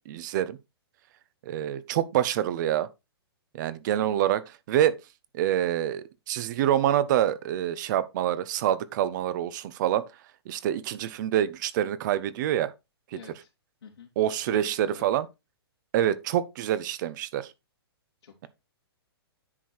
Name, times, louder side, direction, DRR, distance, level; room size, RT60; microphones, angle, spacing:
voice 1, 0.1-0.6 1.5-2.9 3.5-4.4 4.7-5.0 5.3-10.0 10.5-12.7 14.2-15.3 15.9-17.5, right 11 dB, 45° right, 1.0 m, -26 dB
voice 2, 13.1-13.5 13.8-15.1 18.2-18.5, left 6 dB, 75° left, 2.7 m, -46 dB
9.9 x 4.7 x 4.3 m
hypercardioid pair, 130°, 13 cm